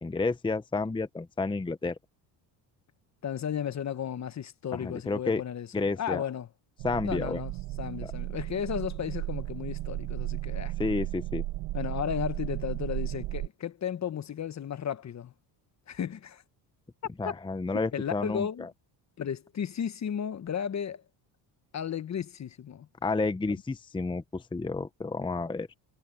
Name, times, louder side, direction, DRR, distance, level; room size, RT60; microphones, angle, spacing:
voice 1, 0.0-1.9 4.7-5.4 5.7-6.2 6.8-7.4 8.0-8.1 10.8-11.4 17.2-18.7 23.0-25.7, left 3 dB, 10° left, 0.8 m, -30 dB
voice 2, 3.2-6.5 7.0-7.5 7.8-10.7 11.7-15.3 15.9-16.4 17.2-17.4 17.9-18.7 19.2-21.0 21.7-22.9 23.4-23.6, left 8 dB, 35° left, 1.1 m, -34 dB
sound 1, 6.8-13.5, right 17 dB, 80° right, 1.4 m, -34 dB
cardioid pair, 105°, 47 cm